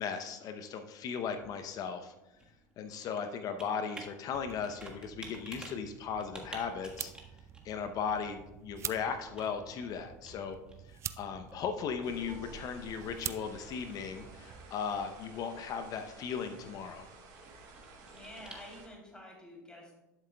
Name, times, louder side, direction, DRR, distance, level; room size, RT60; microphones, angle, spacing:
voice 1, 0.0-2.1 2.8-7.1 7.6-10.6 10.8-17.1, left 6 dB, 45° left, 8 dB, 0.7 m, -37 dB
Computer keyboard, 0.8-19.1, right 2 dB, 10° right, 1.4 m, -54 dB
sound 1, 4.3-14.7, right 9 dB, 35° right, 0.4 m, -47 dB
sound 2, 12.0-18.9, right 3 dB, 50° right, 2.3 m, -52 dB
voice 2, 17.9-19.9, left 1 dB, 10° left, -2 dB, 3.0 m, -50 dB
12.0 x 7.2 x 2.2 m, 0.99 s
hypercardioid pair, 80°, 9 cm